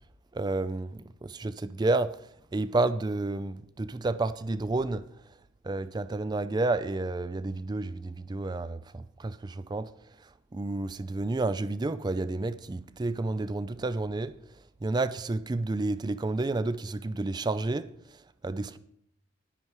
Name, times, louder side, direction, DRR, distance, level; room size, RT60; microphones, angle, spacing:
voice 1, 0.3-2.2 2.5-5.0 5.6-9.9 10.5-14.3 14.8-17.9 18.4-18.8, right 2 dB, 20° right, 0.4 m, -30 dB
9.8 x 9.7 x 4.7 m
head